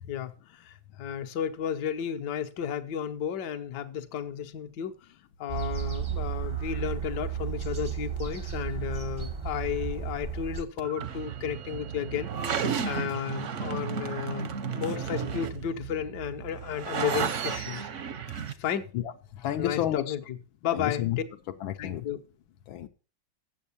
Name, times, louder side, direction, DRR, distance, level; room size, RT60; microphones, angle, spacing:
voice 1, 0.1-4.9 5.4-12.3 12.8-17.9 18.6-18.9 19.6-20.4 20.6-21.3 21.8-22.2, left 9 dB, 65° left, 1.4 m, -33 dB
sound 1, 5.5-10.6, right 8 dB, 30° right, 0.5 m, -33 dB
sound 2, 10.8-18.5, right 7 dB, 60° right, 0.8 m, -33 dB
voice 2, 18.9-20.1 20.7-21.2 21.6-22.1 22.7-22.9, left 12 dB, 80° left, 1.5 m, -31 dB
8.1 x 7.4 x 6.9 m
omnidirectional pair, 2.2 m